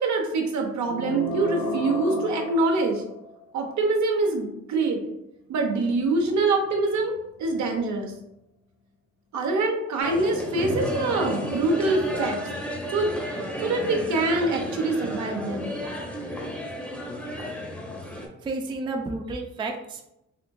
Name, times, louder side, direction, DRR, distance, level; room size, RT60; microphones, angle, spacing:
voice 1, 0.0-3.0 3.5-5.0 5.5-8.1 9.3-12.4 12.9-13.2 13.6-15.8, right 3 dB, 70° right, 2 dB, 0.8 m, -25 dB
sound 1, 0.9-3.5, equal, 55° left, 0.6 m, -32 dB
sound 2, 10.0-18.3, equal, 5° left, 0.8 m, -32 dB
voice 2, 18.4-20.0, right 3 dB, 15° right, 3 dB, 0.3 m, -31 dB
3.7 x 2.6 x 2.2 m, 0.86 s
cardioid pair, 90°, 30 cm